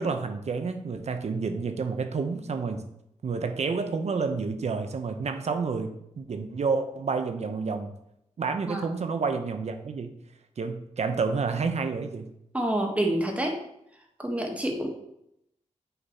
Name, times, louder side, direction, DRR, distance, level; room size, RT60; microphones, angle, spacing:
voice 1, 0.0-2.8 3.2-7.9 8.4-10.1 10.6-12.3, right 4 dB, 60° right, 7 dB, 0.7 m, -29 dB
voice 2, 12.5-13.6 14.2-14.9, right 1 dB, 10° right, 2 dB, 1.2 m, -27 dB
5.7 x 3.9 x 4.2 m, 0.80 s
wide cardioid pair, 85°, 13 cm